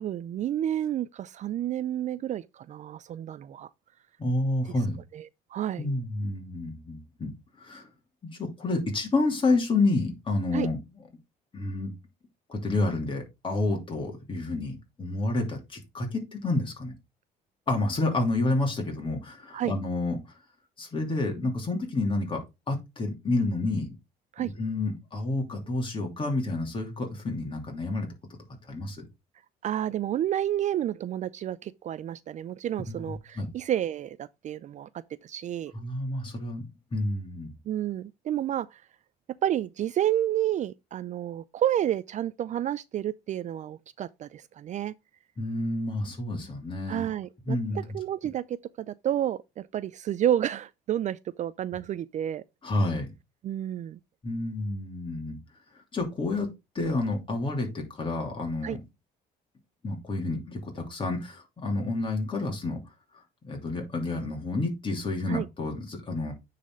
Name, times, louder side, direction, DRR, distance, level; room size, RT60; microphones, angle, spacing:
voice 1, 0.0-3.7 5.1-5.9 10.5-10.7 19.5-19.7 24.3-24.5 29.6-34.9 35.2-35.7 37.7-38.8 39.4-44.9 46.9-52.4 53.4-54.0 58.6-58.8 65.3-65.5, right 11 dB, 45° right, 0.4 m, -30 dB
voice 2, 4.2-5.0 5.8-7.9 8.2-10.8 11.5-11.9 12.5-16.9 17.7-20.3 20.8-23.9 24.4-28.1 28.7-29.0 32.9-33.5 35.7-36.6 36.9-37.5 45.4-47.1 47.5-47.8 52.6-53.1 54.2-55.4 55.9-56.5 56.7-58.8 59.8-62.8 63.4-66.3, left 2 dB, 30° left, 2.9 m, -29 dB
9.3 x 4.2 x 3.7 m
cardioid pair, 110°, 17 cm